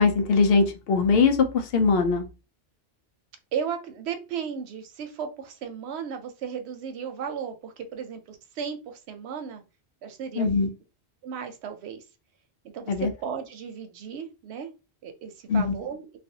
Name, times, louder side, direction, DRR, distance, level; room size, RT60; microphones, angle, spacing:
voice 1, 0.0-2.3 10.4-10.7 12.9-13.1 15.5-15.7, left 4 dB, 70° left, 6 dB, 0.8 m, -21 dB
voice 2, 3.5-9.6 10.0-10.5 11.2-12.0 12.6-12.9 13.2-14.7 15.0-16.1, right 7 dB, 90° right, 7 dB, 0.8 m, -35 dB
2.4 x 2.2 x 2.6 m, 0.30 s
omnidirectional pair, 1.1 m